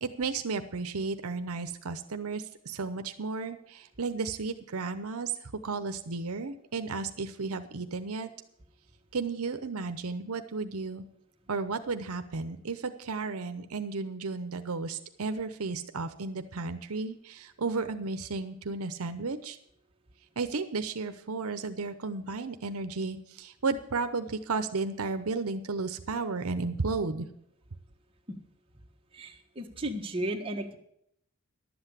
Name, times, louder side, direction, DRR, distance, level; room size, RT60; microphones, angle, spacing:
voice 1, 0.0-5.3 5.6-8.3 9.1-11.0 11.5-19.6 20.4-27.3, right 4 dB, 75° right, 9 dB, 0.8 m, -33 dB
voice 2, 29.1-30.8, right 1 dB, 25° right, 2 dB, 1.4 m, -34 dB
11.5 x 8.0 x 8.1 m, 0.72 s
head